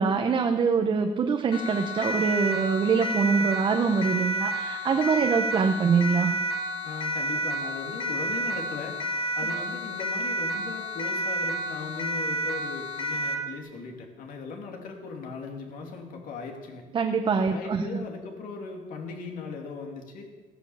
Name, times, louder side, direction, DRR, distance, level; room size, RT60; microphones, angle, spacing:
voice 1, 0.0-6.3 16.9-18.0, right 5 dB, 35° right, 5 dB, 0.8 m, -24 dB
Siren, 1.5-13.5, right 1 dB, 40° left, 1.9 m, -30 dB
voice 2, 6.8-9.0 9.3-16.8 17.5-20.3, left 4 dB, 65° left, 2 dB, 2.8 m, -38 dB
15.5 x 10.0 x 7.2 m, 1.3 s
cardioid pair, 155°, 15 cm